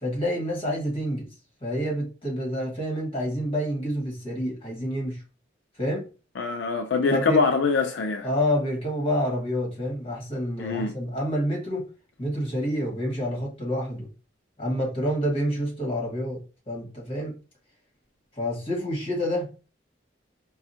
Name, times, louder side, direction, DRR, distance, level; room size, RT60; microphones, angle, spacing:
voice 1, 0.0-1.3 1.6-5.2 5.8-6.0 7.1-7.4 8.2-11.8 12.2-14.1 14.6-16.4 16.7-17.4 18.4-19.7, equal, 30° left, 1.6 m, -28 dB
voice 2, 6.4-8.3 10.6-10.9, left 4 dB, 75° left, 0.4 m, -24 dB
4.8 x 2.3 x 2.8 m
head